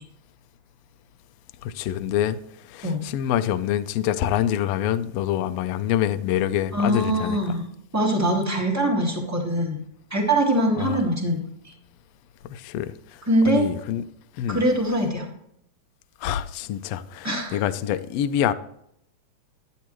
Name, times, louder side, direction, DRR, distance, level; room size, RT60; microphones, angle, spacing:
voice 1, 1.6-2.4 2.7-7.4 10.8-11.0 12.4-12.9 13.5-14.0 14.4-14.6 16.2-18.5, left 11 dB, 85° left, 1.4 m, -26 dB
voice 2, 6.7-7.6 7.9-9.8 10.1-11.4 13.3-13.6 14.5-15.2 17.2-17.6, right 1 dB, 15° right, 0.5 m, -22 dB
12.0 x 9.5 x 3.1 m
omnidirectional pair, 3.6 m